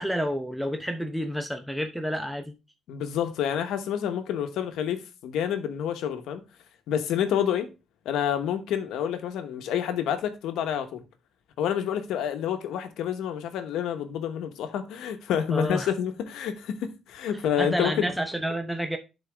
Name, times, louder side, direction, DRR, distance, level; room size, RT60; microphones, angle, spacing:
voice 1, 0.0-2.6 15.5-15.9 17.6-19.0, equal, ahead, 0.9 m, -29 dB
voice 2, 2.9-6.4 6.9-7.7 8.0-11.0 11.6-18.1, left 9 dB, 85° left, 1.1 m, -28 dB
11.0 x 4.1 x 3.4 m
cardioid pair, 90°, 0 cm